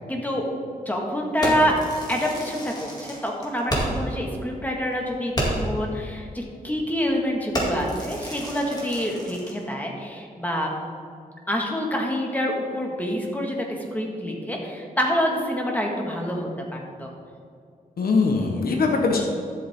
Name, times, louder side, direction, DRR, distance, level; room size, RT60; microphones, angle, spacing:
voice 1, 0.1-0.5 0.9-1.7 2.1-10.7 11.5-17.1, equal, 10° left, 0 dB, 1.8 m, -27 dB
Fireworks, 1.4-4.1 4.5-4.6 4.9-5.0 5.3-5.8 6.4-6.6 6.9-7.2 7.5-9.6, right 1 dB, 25° left, 2.6 m, -30 dB
voice 2, 18.0-19.2, left 4 dB, 80° left, 1 dB, 1.2 m, -22 dB
12.5 x 7.9 x 3.7 m, 2.3 s
wide cardioid pair, 100°, 15 cm